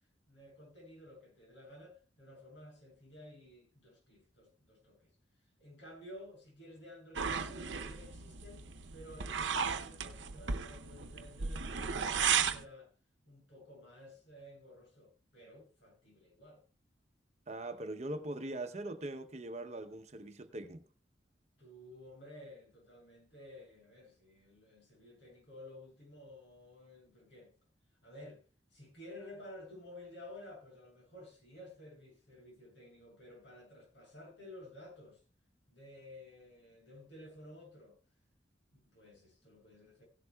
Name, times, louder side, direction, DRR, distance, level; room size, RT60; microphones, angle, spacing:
voice 1, 0.3-5.0 5.6-12.9 13.2-16.6 21.6-27.5 28.0-28.4 28.7-35.2 35.7-38.0 38.8-40.1, left 1 dB, 80° left, 7.6 m, -53 dB
sound 1, 7.2-12.6, right 6 dB, 85° right, 0.8 m, -35 dB
voice 2, 17.5-20.9, right 1 dB, 35° right, 0.8 m, -41 dB
17.0 x 11.5 x 2.3 m
head